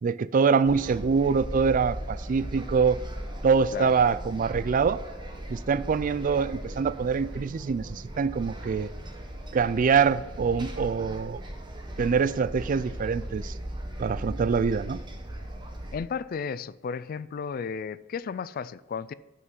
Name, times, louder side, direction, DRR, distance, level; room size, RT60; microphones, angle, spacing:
voice 1, 0.0-3.0 3.4-5.0 5.5-8.9 9.5-11.4 12.0-13.5 14.0-15.0, right 5 dB, 45° right, 0.3 m, -24 dB
sound 1, 0.7-16.0, right 1 dB, 25° right, 1.2 m, -38 dB
voice 2, 15.9-19.1, left 6 dB, 50° left, 0.3 m, -33 dB
9.6 x 5.6 x 5.3 m
head